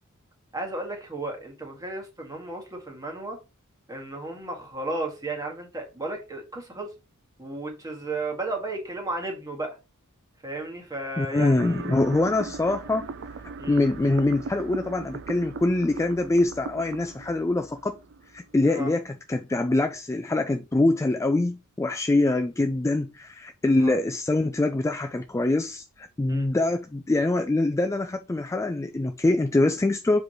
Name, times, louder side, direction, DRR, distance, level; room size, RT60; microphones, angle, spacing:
voice 1, 0.5-3.4 3.9-6.9 7.4-9.8 10.4-11.9 13.6-13.8 18.7-18.9 23.8-24.0 26.3-26.5, right 2 dB, 15° right, 1.8 m, -34 dB
voice 2, 11.2-13.1 13.7-18.0 18.3-30.2, left 2 dB, 15° left, 0.3 m, -24 dB
sound 1, 11.6-18.6, right 4 dB, 55° right, 0.5 m, -39 dB
7.3 x 4.6 x 3.1 m
head